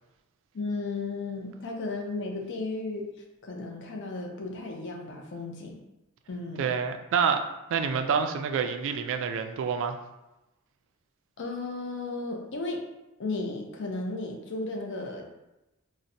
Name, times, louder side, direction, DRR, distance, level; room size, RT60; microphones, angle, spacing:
voice 1, 0.5-3.1 3.4-5.8 6.3-6.7 11.4-12.8 13.2-15.3, left 3 dB, 55° left, 1 dB, 0.5 m, -34 dB
voice 2, 6.6-7.4 7.7-10.0, right 6 dB, 60° right, 7 dB, 0.3 m, -27 dB
3.9 x 2.1 x 2.6 m, 0.98 s
head